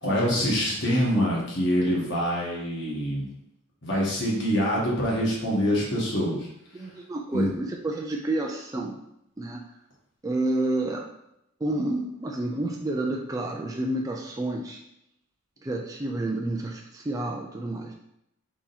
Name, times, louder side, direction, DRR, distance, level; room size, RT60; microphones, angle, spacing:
voice 1, 0.0-3.3 3.8-6.5 7.3-7.5, equal, 55° left, -4 dB, 1.3 m, -25 dB
voice 2, 6.7-9.0 9.4-9.6 10.2-11.0 11.6-14.8 15.6-17.9, right 2 dB, 15° right, 0 dB, 0.3 m, -29 dB
3.6 x 2.9 x 4.1 m, 0.80 s
head